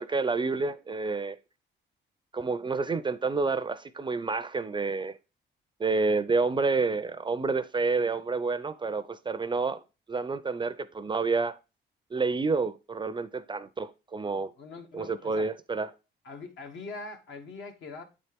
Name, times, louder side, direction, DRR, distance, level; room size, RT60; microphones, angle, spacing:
voice 1, 0.0-1.4 2.3-5.2 5.8-9.8 10.1-11.5 12.1-14.5 14.9-15.9, right 4 dB, 25° right, 0.4 m, -29 dB
voice 2, 14.6-15.5 16.2-18.0, left 3 dB, 70° left, 1.3 m, -42 dB
8.6 x 4.2 x 3.4 m
cardioid pair, 90°, 20 cm